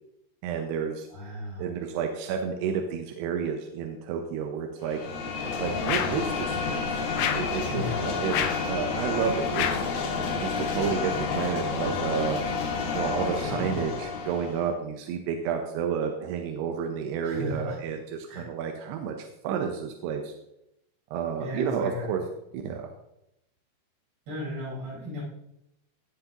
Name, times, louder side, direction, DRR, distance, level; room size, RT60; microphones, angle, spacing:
voice 1, 0.4-1.1 1.6-5.0 5.6-7.0 7.4-8.3 8.6-9.8 10.4-12.4 12.9-20.3 21.1-22.2 22.5-22.9, right 7 dB, 75° right, 3 dB, 2.6 m, -30 dB
voice 2, 1.1-1.7 7.7-8.0 13.4-13.9 17.2-17.8 18.3-18.5 21.4-22.2 24.3-25.2, left 1 dB, 60° right, -6 dB, 6.5 m, -35 dB
sound 1, 4.8-14.7, left 4 dB, 60° left, 2.1 m, -30 dB
sound 2, 5.9-6.3 7.2-7.6 8.3-8.7 9.5-9.9, left 9 dB, 80° left, 2.7 m, -29 dB
17.0 x 8.0 x 2.9 m, 0.84 s
omnidirectional pair, 5.3 m